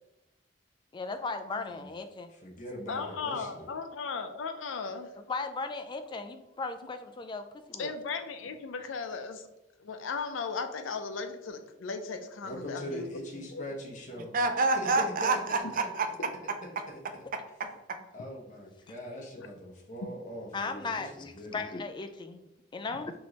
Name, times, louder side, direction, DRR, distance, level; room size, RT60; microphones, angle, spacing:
voice 1, 0.9-2.3 5.2-7.9 20.5-23.1, left 3 dB, 25° left, 8 dB, 0.3 m, -37 dB
voice 2, 1.5-1.9 2.3-3.7 12.4-14.3 14.8-15.4 18.1-21.6, equal, 40° left, -1 dB, 1.0 m, -41 dB
voice 3, 2.9-5.1 7.8-9.5 9.8-13.1 13.3-13.7 19.4-19.5 22.9-23.0, left 5 dB, 90° left, 7 dB, 0.5 m, -36 dB
voice 4, 14.3-16.3 17.6-18.0, right 3 dB, 45° right, 7 dB, 0.5 m, -28 dB
4.4 x 3.1 x 2.9 m, 0.92 s
head